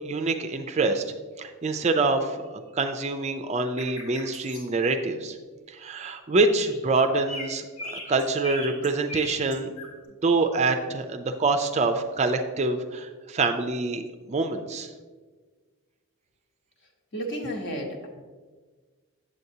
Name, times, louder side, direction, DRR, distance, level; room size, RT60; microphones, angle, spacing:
voice 1, 0.0-1.0 1.4-5.4 5.7-9.7 10.2-14.0 14.3-14.9, right 3 dB, 30° right, 7 dB, 0.4 m, -26 dB
sound 1, 3.8-4.6 6.5-7.0 7.3-9.9, left 1 dB, 80° left, 1.9 m, -38 dB
voice 2, 17.1-18.1, equal, 55° left, 1 dB, 1.1 m, -32 dB
7.8 x 7.7 x 2.7 m, 1.4 s
head